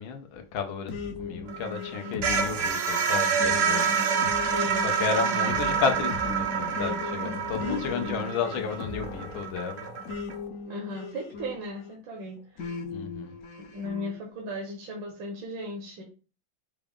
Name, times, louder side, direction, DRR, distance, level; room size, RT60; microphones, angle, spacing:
voice 1, 0.0-4.0 4.8-9.9 12.9-13.3, left 6 dB, 85° left, 1.5 m, -32 dB
sound 1, 0.9-12.0 12.6-14.1, left 4 dB, 65° left, 0.8 m, -38 dB
sound 2, 1.5-10.3, right 6 dB, 60° right, 0.9 m, -28 dB
voice 2, 2.0-2.5 4.4-5.7 7.2-8.2 10.6-12.7 13.6-16.0, left 1 dB, 80° right, 1.7 m, -37 dB
5.9 x 2.4 x 3.4 m
omnidirectional pair, 2.1 m